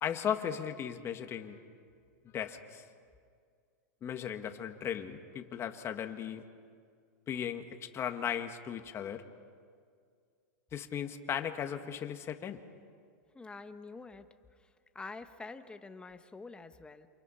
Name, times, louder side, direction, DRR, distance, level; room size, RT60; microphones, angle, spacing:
voice 1, 0.0-1.6 2.3-2.8 4.0-6.4 7.3-7.7 7.9-9.2 10.7-12.6, left 9 dB, 30° left, 6 dB, 1.9 m, -36 dB
voice 2, 13.3-14.3 14.9-17.1, left 3 dB, 10° left, 8 dB, 1.4 m, -46 dB
29.0 x 27.5 x 5.8 m, 2.2 s
hypercardioid pair, 120°, 9 cm